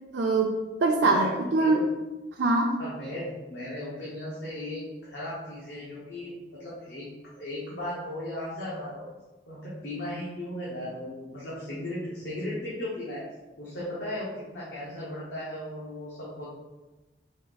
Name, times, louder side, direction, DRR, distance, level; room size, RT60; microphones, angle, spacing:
voice 1, 0.1-1.8 2.4-2.8, right 3 dB, 90° right, 0 dB, 0.5 m, -23 dB
voice 2, 1.0-1.8 2.8-9.1 9.5-13.2 13.6-16.5, left 1 dB, 80° left, -8 dB, 1.2 m, -36 dB
4.4 x 3.0 x 4.0 m, 1.1 s
head